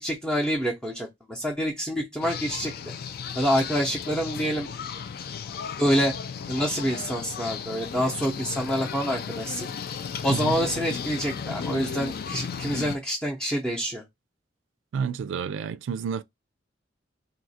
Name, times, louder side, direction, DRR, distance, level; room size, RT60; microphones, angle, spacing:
voice 1, 0.0-2.7 3.4-4.7 5.8-6.1 6.5-9.7 10.2-14.0, equal, 5° left, 0.6 m, -27 dB
sound 1, 2.2-13.0, left 6 dB, 55° left, 0.3 m, -35 dB
voice 2, 14.9-16.2, right 6 dB, 85° right, 0.3 m, -29 dB
2.7 x 2.5 x 4.1 m
head